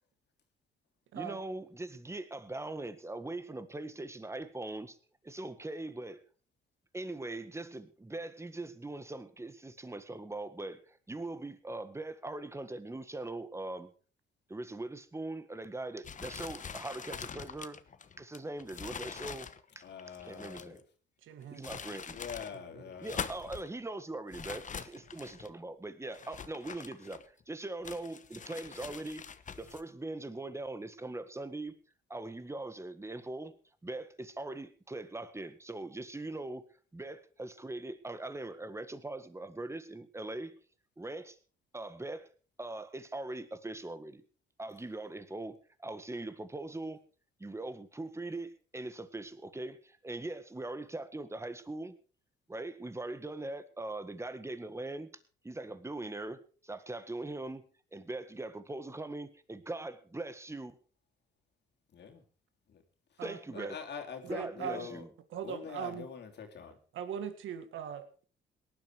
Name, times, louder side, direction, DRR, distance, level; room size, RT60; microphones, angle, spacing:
voice 1, 1.1-5.0 5.2-6.2 6.9-13.9 14.5-17.8 18.2-19.5 19.8-19.9 20.2-20.8 21.5-22.2 23.0-24.6 25.1-29.3 29.6-31.7 32.1-33.5 33.8-36.6 36.9-40.5 41.0-41.4 41.7-42.3 42.6-44.2 44.6-47.0 47.4-52.0 52.5-55.1 55.4-57.6 57.9-60.8 63.2-63.8 64.3-65.1, right 2 dB, 15° right, 12 dB, 1.7 m, -41 dB
sound 1, 16.0-20.8 21.4-22.5 22.9-23.7 24.3-25.5 26.1-27.4 27.8-29.8, left 6 dB, 40° left, 1.2 m, -44 dB
voice 2, 19.8-20.8 22.1-23.2 61.9-62.2 62.7-62.8 63.1-63.2 63.5-65.0 65.4-66.8, left 7 dB, 60° left, 2 dB, 3.2 m, -44 dB
voice 3, 21.2-21.8 22.5-22.8 63.2-63.7 64.2-64.9 65.3-66.1 66.9-68.2, right 8 dB, 80° right, 11 dB, 1.9 m, -40 dB
18.5 x 11.5 x 4.7 m, 0.39 s
cardioid pair, 90°, 20 cm